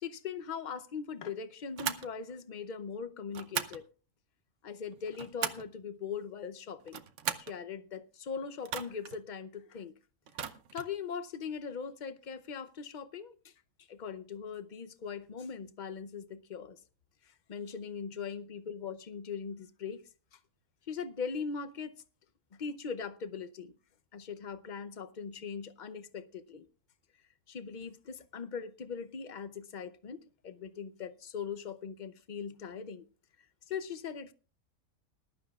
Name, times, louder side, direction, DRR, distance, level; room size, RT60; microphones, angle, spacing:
voice 1, 0.0-3.9 4.6-7.0 7.4-9.9 10.7-13.5 13.9-16.8 17.5-20.0 20.9-22.0 22.5-23.7 24.1-26.7 27.5-33.0 33.7-34.3, left 6 dB, 45° left, 0.6 m, -40 dB
sound 1, 1.8-2.1 3.3-3.8 4.9-5.7 6.8-7.6 8.6-9.2 10.3-10.9, right 8 dB, 60° right, 1.0 m, -37 dB
20.5 x 11.5 x 2.3 m
omnidirectional pair, 1.5 m